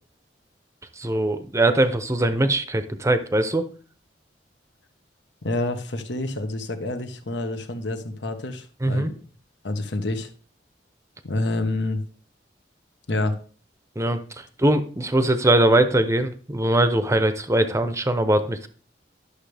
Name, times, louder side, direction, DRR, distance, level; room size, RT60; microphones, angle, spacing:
voice 1, 1.0-3.6 8.8-9.1 14.0-18.7, right 1 dB, 15° right, 10 dB, 0.7 m, -21 dB
voice 2, 5.4-9.2 9.6-10.3 11.2-12.0 13.1-13.4, left 2 dB, 80° left, 7 dB, 1.2 m, -28 dB
11.5 x 6.6 x 3.4 m, 0.40 s
head